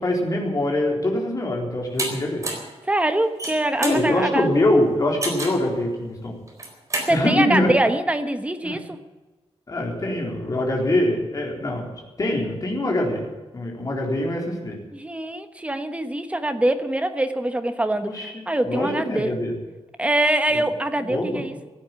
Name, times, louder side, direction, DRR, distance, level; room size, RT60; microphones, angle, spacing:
voice 1, 0.0-2.4 3.8-6.3 7.1-7.7 8.6-8.8 9.7-11.9 12.2-13.2 13.5-14.8 18.0-19.5 20.5-20.6 21.1-21.4, left 1 dB, 35° left, 0 dB, 4.0 m, -23 dB
sound 1, 2.0-2.1 2.4-2.7 3.2-4.0 5.2-5.6 6.5-7.1, right 2 dB, 30° right, 4.0 m, -28 dB
voice 2, 2.8-4.5 7.0-9.0 14.9-19.3 20.0-21.5, right 1 dB, 10° right, 8 dB, 1.1 m, -24 dB
16.0 x 9.3 x 9.6 m, 1.2 s
wide cardioid pair, 170°, 11 cm